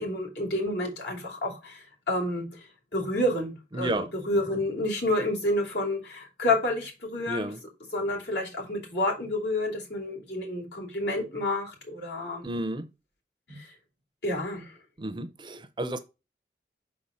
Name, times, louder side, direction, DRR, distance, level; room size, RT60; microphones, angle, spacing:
voice 1, 0.0-7.5 7.9-12.5 13.5-13.7 14.2-14.8, left 1 dB, 75° left, 2.8 m, -29 dB
voice 2, 3.7-4.1 7.3-7.6 12.4-12.9 15.0-16.0, right 1 dB, 25° right, 0.5 m, -32 dB
5.9 x 4.2 x 4.9 m
head